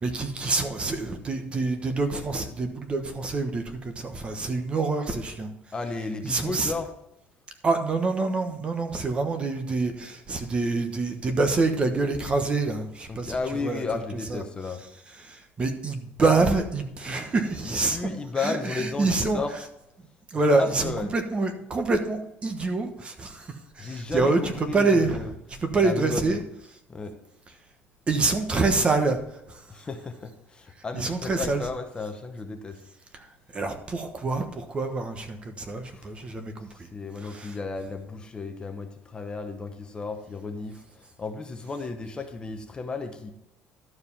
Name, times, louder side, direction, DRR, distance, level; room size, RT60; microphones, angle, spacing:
voice 1, 0.0-5.5 6.2-6.7 7.6-13.4 13.6-13.8 14.3-14.4 15.2-18.0 18.4-19.4 20.3-25.2 25.6-26.4 28.1-29.2 29.5-29.6 30.9-31.6 33.1-33.3 33.5-36.9 37.2-37.6, right 3 dB, 25° right, 7 dB, 1.1 m, -26 dB
voice 2, 5.7-6.9 13.1-14.8 17.6-19.5 20.5-21.1 23.8-25.3 25.8-26.4 26.9-27.2 29.7-32.8 35.9-36.1 36.7-43.3, left 4 dB, 20° left, 6 dB, 0.9 m, -33 dB
12.0 x 4.8 x 5.5 m, 0.85 s
cardioid pair, 145°, 4 cm